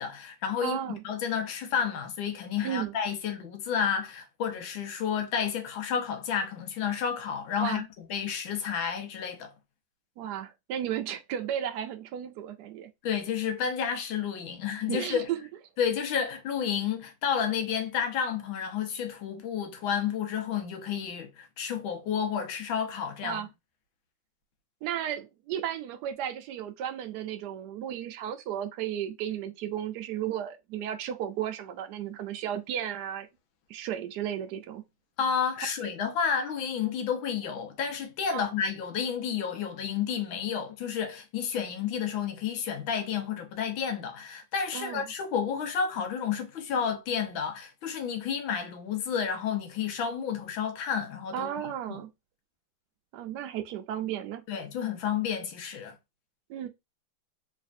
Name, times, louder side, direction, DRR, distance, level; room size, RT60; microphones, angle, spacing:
voice 1, 0.0-0.8 1.0-7.8 8.1-9.5 13.0-15.3 15.8-23.4 35.2-51.5 51.9-52.0 54.5-56.0, left 7 dB, 80° left, 1.6 m, -31 dB
voice 2, 0.6-1.0 2.6-2.9 7.6-7.9 10.2-12.9 14.9-15.4 23.2-23.5 24.8-33.3 33.7-34.8 38.3-38.5 44.7-45.0 51.3-52.1 53.1-54.4 56.5-56.7, right 10 dB, 75° right, 1.0 m, -34 dB
3.4 x 3.2 x 2.5 m
omnidirectional pair, 2.2 m